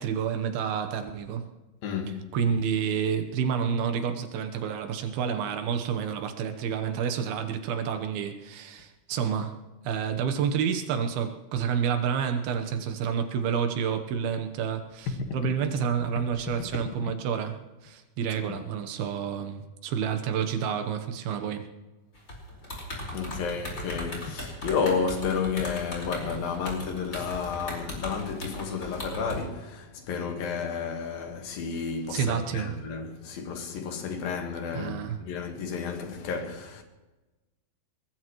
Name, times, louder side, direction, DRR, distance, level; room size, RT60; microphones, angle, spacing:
voice 1, 0.0-1.5 2.3-9.6 9.8-17.6 17.8-21.7 32.1-32.7 34.7-35.2, right 7 dB, 75° right, 3.0 m, -29 dB
voice 2, 1.8-2.3 15.2-15.3 18.5-18.6 22.7-22.8 23.1-36.8, left 5 dB, 70° left, 3.2 m, -31 dB
sound 1, 22.1-29.4, equal, 20° left, 4.9 m, -37 dB
23.0 x 20.0 x 3.1 m
omnidirectional pair, 4.5 m